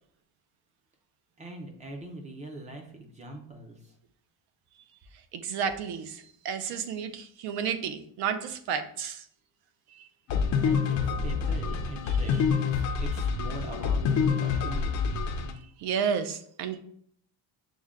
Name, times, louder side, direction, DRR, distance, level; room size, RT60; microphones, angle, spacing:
voice 1, 1.4-3.9 10.6-14.9, right 1 dB, 15° right, 3 dB, 0.4 m, -43 dB
voice 2, 5.3-9.2 9.9-10.1 15.8-16.8, right 7 dB, 60° right, 8 dB, 0.6 m, -32 dB
sound 1, 10.3-15.5, left 6 dB, 40° left, 0.5 m, -27 dB
6.1 x 2.2 x 3.5 m, 0.64 s
cardioid pair, 170°, 44 cm